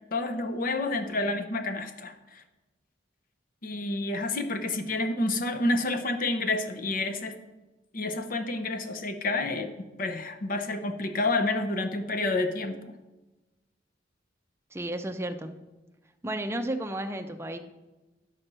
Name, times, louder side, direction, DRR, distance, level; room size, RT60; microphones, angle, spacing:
voice 1, 0.1-2.4 3.6-7.4 7.9-9.7 10.0-12.9, left 2 dB, 50° left, 7 dB, 0.7 m, -29 dB
voice 2, 14.7-15.6 16.2-17.6, right 1 dB, 15° right, 6 dB, 0.5 m, -33 dB
9.9 x 4.2 x 6.8 m, 1.1 s
head